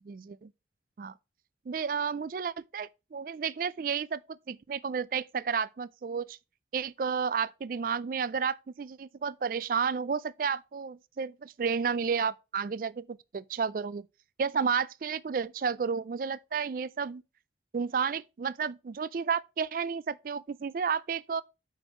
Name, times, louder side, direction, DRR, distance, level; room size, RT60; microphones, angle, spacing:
voice 1, 0.0-0.5 1.0-1.1 1.7-6.4 6.7-14.0 14.4-17.2 17.7-21.4, right 6 dB, 50° right, 0.3 m, -32 dB
8.8 x 4.6 x 4.3 m
head